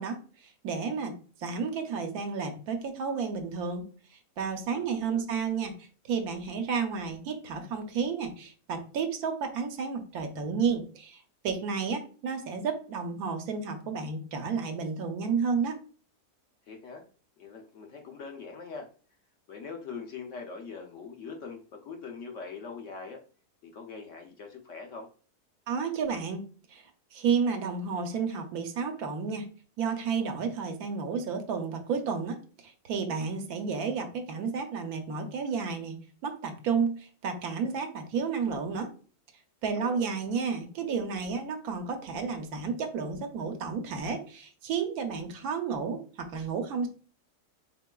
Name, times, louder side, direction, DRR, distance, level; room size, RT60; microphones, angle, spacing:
voice 1, 0.0-15.8 25.7-26.4 26.7-29.5 29.8-36.0 36.2-38.9 39.6-46.9, right 5 dB, 70° right, 6 dB, 1.1 m, -32 dB
voice 2, 4.7-5.2 16.7-17.0 17.4-18.9 19.5-23.2 23.6-25.1 39.7-40.1, left 5 dB, 65° left, 3 dB, 0.8 m, -42 dB
4.6 x 3.6 x 2.2 m, 0.40 s
omnidirectional pair, 1.7 m